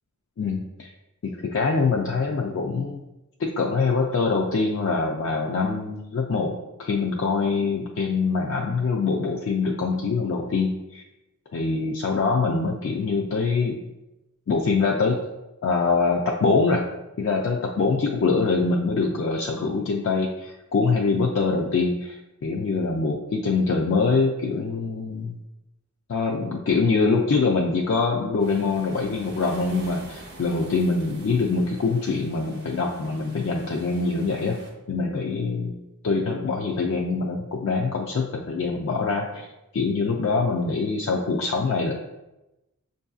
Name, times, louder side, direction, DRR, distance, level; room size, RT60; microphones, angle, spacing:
voice 1, 0.4-0.9 1.2-3.0 3.4-11.0 11.5-13.8 14.5-15.2 15.6-16.9 17.2-22.2 22.4-25.4 26.1-35.8 36.0-39.5 39.7-41.9, left 4 dB, 60° left, 0 dB, 0.3 m, -24 dB
sound 1, 28.4-34.7, right 2 dB, 50° right, 0.7 m, -46 dB
5.9 x 2.6 x 2.3 m, 0.97 s
head